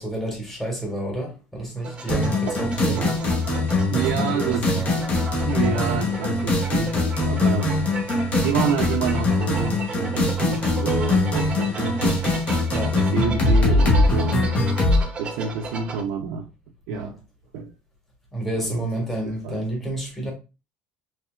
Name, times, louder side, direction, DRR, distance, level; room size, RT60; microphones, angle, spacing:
voice 1, 0.0-3.1 3.9-4.8 12.7-13.0 16.9-17.1 18.3-20.3, right 1 dB, 5° left, 1.8 m, -30 dB
sound 1, 1.8-16.0, right 4 dB, 30° right, 0.8 m, -35 dB
sound 2, 2.1-15.0, left 2 dB, 35° left, 1.2 m, -22 dB
voice 2, 2.5-3.2 3.9-5.1 5.4-7.8 8.2-12.3 12.9-14.4 15.2-16.5 16.9-17.2 17.5-17.7 18.6-19.7, right 6 dB, 80° right, 0.6 m, -29 dB
4.3 x 3.2 x 2.4 m
cardioid pair, 125°, 4 cm